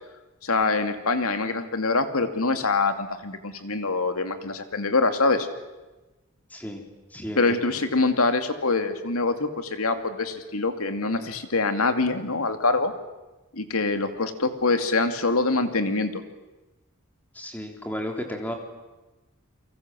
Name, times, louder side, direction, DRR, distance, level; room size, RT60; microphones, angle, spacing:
voice 1, 0.4-5.5 7.4-12.9 13.5-16.2, left 3 dB, 85° left, 8 dB, 2.6 m, -24 dB
voice 2, 6.5-6.8 7.1-7.7 17.3-18.5, equal, 5° left, 3 dB, 3.6 m, -33 dB
29.5 x 24.0 x 7.7 m, 1.1 s
head